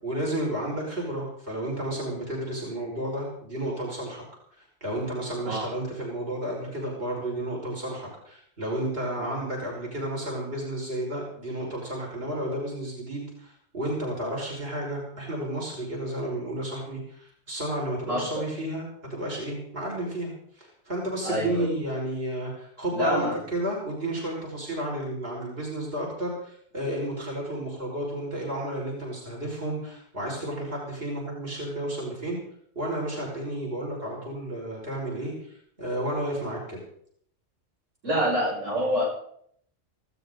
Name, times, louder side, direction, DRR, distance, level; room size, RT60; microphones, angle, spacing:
voice 1, 0.0-4.2 4.6-32.4 32.8-36.8, right 1 dB, 50° right, -2 dB, 5.7 m, -32 dB
voice 2, 18.1-18.4 21.2-21.7 22.9-23.4 38.0-39.1, equal, 85° right, -3 dB, 6.7 m, -26 dB
19.0 x 16.5 x 4.0 m, 0.65 s
omnidirectional pair, 1.3 m